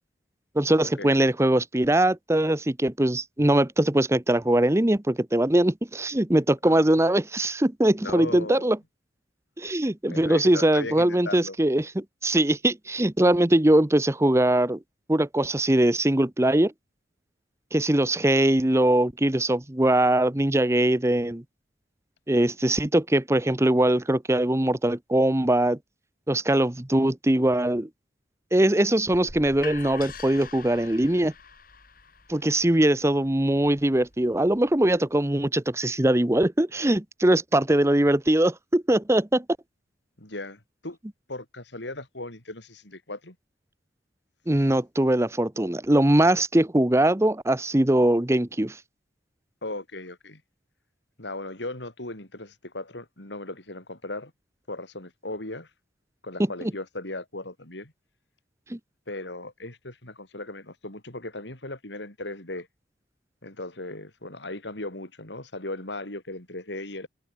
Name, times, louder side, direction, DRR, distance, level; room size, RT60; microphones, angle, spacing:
voice 1, 0.5-8.8 9.6-14.8 15.1-16.7 17.7-21.4 22.3-25.8 26.3-27.9 28.5-31.3 32.3-39.4 44.5-48.7 56.6-56.7 58.7-58.8, right 1 dB, 15° right, 0.9 m, -22 dB
voice 2, 8.0-8.7 10.1-11.6 40.2-41.0 41.3-43.3 49.6-50.4 51.2-54.3 54.7-55.7 56.2-57.9 59.1-62.7 63.4-67.1, left 2 dB, 75° left, 5.0 m, -37 dB
sound 1, 29.1-34.9, left 5 dB, 50° left, 6.9 m, -44 dB
head